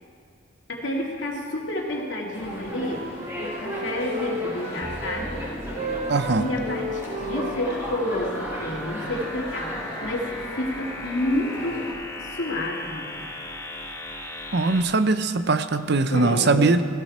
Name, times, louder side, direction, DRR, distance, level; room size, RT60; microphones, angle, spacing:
voice 1, 0.7-3.0 3.4-5.4 6.3-11.8 12.2-13.1 16.1-16.8, left 1 dB, 70° left, -1 dB, 2.5 m, -29 dB
Wind instrument woodwind instrument, 1.9-5.3 5.6-9.5, equal, 35° right, 1.0 m, -35 dB
sound 1, 2.3-11.9, equal, 15° right, 3.9 m, -37 dB
sound 2, 4.8-14.8, left 1 dB, 15° left, 1.1 m, -37 dB
voice 2, 6.1-6.5 14.5-16.8, right 3 dB, 55° right, 10 dB, 0.6 m, -21 dB
18.0 x 16.0 x 4.3 m, 2.4 s
head